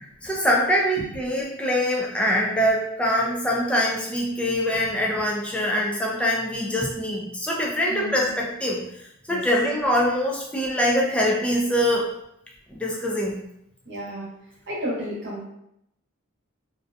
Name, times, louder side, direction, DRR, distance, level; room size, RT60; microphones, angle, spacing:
voice 1, 0.2-12.1 12.7-13.4, equal, 5° left, -2 dB, 0.3 m, -24 dB
voice 2, 7.9-8.3 9.3-9.4 13.9-14.3 14.7-15.4, equal, 55° right, -5 dB, 0.9 m, -32 dB
2.5 x 2.2 x 2.5 m, 0.79 s
head